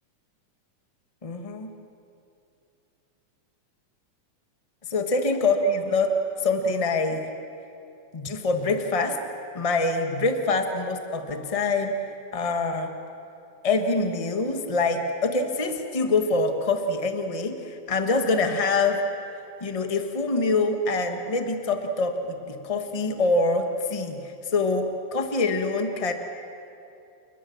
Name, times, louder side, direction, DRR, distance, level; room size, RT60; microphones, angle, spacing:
voice 1, 1.2-1.7 4.9-6.1 6.4-7.3 8.1-9.2 9.5-12.0 12.3-12.9 13.6-19.0 19.6-26.1, left 3 dB, 40° left, 6 dB, 0.4 m, -25 dB
29.0 x 20.5 x 7.2 m, 2.6 s
omnidirectional pair, 3.4 m